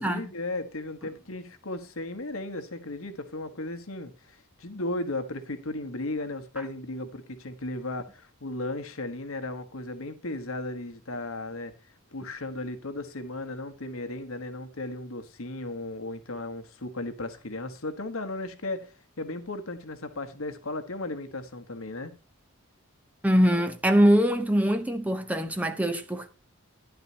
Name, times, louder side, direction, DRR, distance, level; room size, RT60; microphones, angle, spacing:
voice 1, 0.0-22.1, left 2 dB, 70° left, 1.3 m, -35 dB
voice 2, 23.2-26.3, equal, 5° right, 0.9 m, -23 dB
12.0 x 10.5 x 2.8 m
head